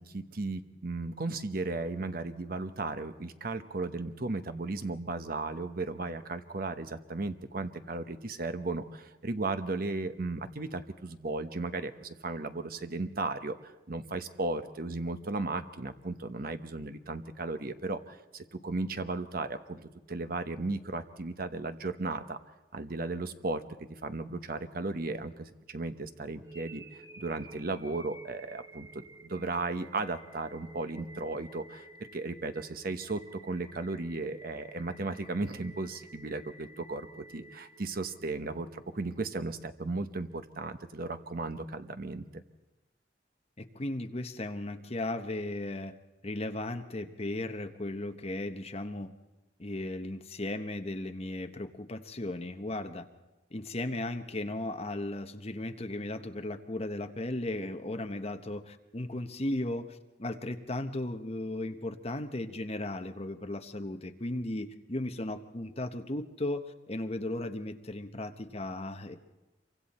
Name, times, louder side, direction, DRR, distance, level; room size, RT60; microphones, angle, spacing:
voice 1, 0.0-22.4 22.7-23.6 24.0-31.8 32.1-42.4, right 3 dB, 55° right, 10 dB, 1.0 m, -35 dB
sound 1, 26.4-38.5, right 2 dB, 20° right, 1.1 m, -53 dB
voice 2, 43.6-45.9 46.2-49.1 49.6-53.0 53.5-69.2, left 1 dB, 35° left, 7 dB, 1.1 m, -36 dB
27.0 x 24.0 x 4.3 m, 1.1 s
head